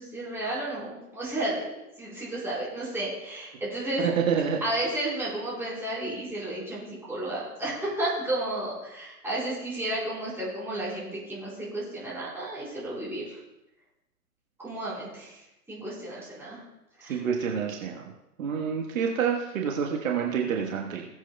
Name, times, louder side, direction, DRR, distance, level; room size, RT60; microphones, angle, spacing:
voice 1, 0.0-1.7 2.0-4.0 4.6-13.4 14.6-15.4 15.7-16.6 17.0-17.2, right 1 dB, 5° right, -8 dB, 4.0 m, -32 dB
voice 2, 4.0-4.6 17.1-18.1 18.4-21.1, right 7 dB, 55° right, 1 dB, 1.4 m, -27 dB
19.5 x 8.1 x 2.3 m, 0.93 s
hypercardioid pair, 135°, 48 cm